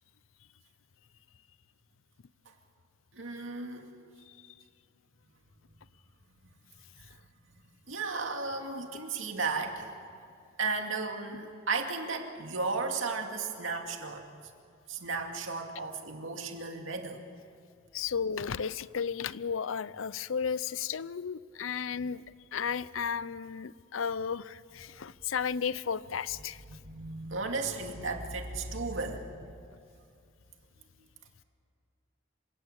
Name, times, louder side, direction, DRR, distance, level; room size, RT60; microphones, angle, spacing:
voice 1, 3.1-3.9 7.9-9.9 10.6-14.2 14.9-17.2 26.7-29.5, right 4 dB, 75° right, 4 dB, 2.4 m, -34 dB
voice 2, 17.9-22.2 22.5-26.6, left 6 dB, 80° left, 18 dB, 0.6 m, -34 dB
27.0 x 17.0 x 8.1 m, 2.4 s
head